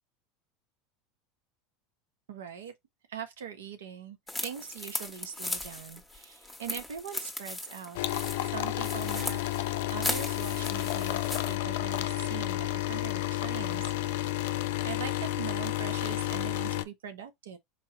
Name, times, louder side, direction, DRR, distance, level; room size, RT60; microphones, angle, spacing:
voice 1, 2.3-2.7 3.1-8.0 8.4-9.4 9.9-13.9 14.8-17.6, right 8 dB, 80° right, 0.9 m, -42 dB
sound 1, 4.3-11.6, left 2 dB, 5° left, 1.3 m, -38 dB
sound 2, 7.9-16.8, left 15 dB, 75° left, 0.5 m, -31 dB
4.6 x 2.9 x 2.8 m
hypercardioid pair, 85°, 0 cm